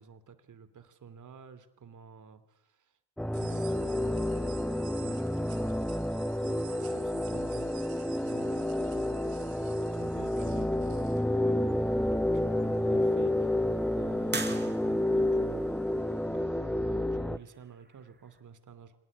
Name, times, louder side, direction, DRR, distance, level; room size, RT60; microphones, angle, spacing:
voice 1, 0.0-2.9 3.3-6.1 6.4-7.9 8.2-13.7 13.9-19.0, right 6 dB, 55° right, 12 dB, 2.9 m, -50 dB
sound 1, 3.2-17.4, left 1 dB, 5° left, 0.9 m, -29 dB
sound 2, 3.3-11.2, right 10 dB, 75° right, 4.1 m, -52 dB
sound 3, 10.0-18.4, right 4 dB, 30° right, 4.4 m, -46 dB
25.5 x 19.5 x 8.6 m, 0.85 s
supercardioid pair, 60°, 36 cm